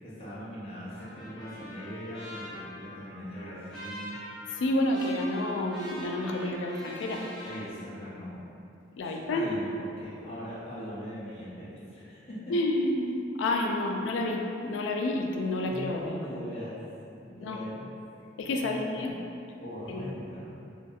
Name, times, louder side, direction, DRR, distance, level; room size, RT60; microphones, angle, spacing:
voice 1, 0.0-4.2 7.4-8.4 9.0-12.5 15.7-16.8 17.2-17.9 18.6-19.1 19.6-20.5, equal, 35° left, -10 dB, 0.6 m, -40 dB
Trumpet, 0.9-7.6, equal, ahead, 0.9 m, -44 dB
voice 2, 4.6-7.2 9.0-9.5 12.5-16.0 17.4-17.6 18.4-19.1 19.9-20.1, left 1 dB, 85° left, 2 dB, 0.3 m, -29 dB
2.7 x 2.5 x 2.3 m, 2.7 s
head